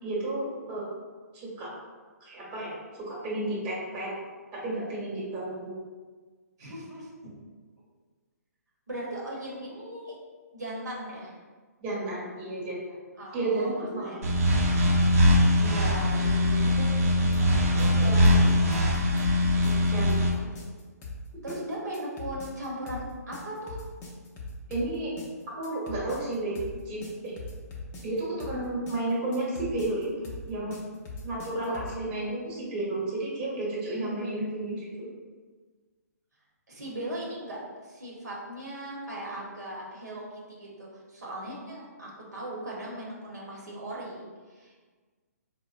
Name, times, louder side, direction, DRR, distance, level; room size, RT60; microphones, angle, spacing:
voice 1, 0.0-0.8 1.3-1.7 2.2-4.1 4.6-5.7 6.6-6.7 11.8-13.0 13.3-14.1 18.2-18.5 19.9-20.3 24.7-25.1 25.5-26.5 26.8-27.3 28.0-30.8 31.2-35.1, right 2 dB, 25° right, -6 dB, 1.0 m, -32 dB
voice 2, 6.6-7.1 8.9-10.2 10.5-11.3 13.2-14.3 15.4-19.0 19.6-19.9 20.4-20.5 21.4-23.8 31.6-32.5 36.7-40.2 40.5-44.2 44.5-44.8, right 1 dB, 85° right, -4 dB, 0.9 m, -38 dB
sound 1, 14.2-20.3, left 1 dB, 60° right, 0.6 m, -22 dB
sound 2, 17.3-32.0, left 2 dB, 20° left, 0.5 m, -41 dB
4.2 x 2.1 x 2.4 m, 1.4 s
figure-of-eight pair, 135°, 9 cm